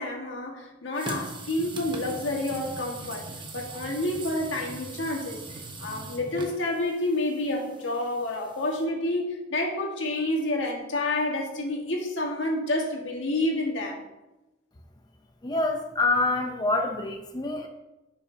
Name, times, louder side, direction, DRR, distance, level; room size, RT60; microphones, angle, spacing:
voice 1, 0.0-3.2 3.5-14.0, left 1 dB, 85° left, 0 dB, 1.7 m, -29 dB
sound 1, 1.0-8.8, right 2 dB, 25° right, 0.9 m, -41 dB
voice 2, 15.4-17.7, left 2 dB, 20° left, 3 dB, 0.6 m, -26 dB
11.0 x 5.7 x 2.7 m, 0.99 s
head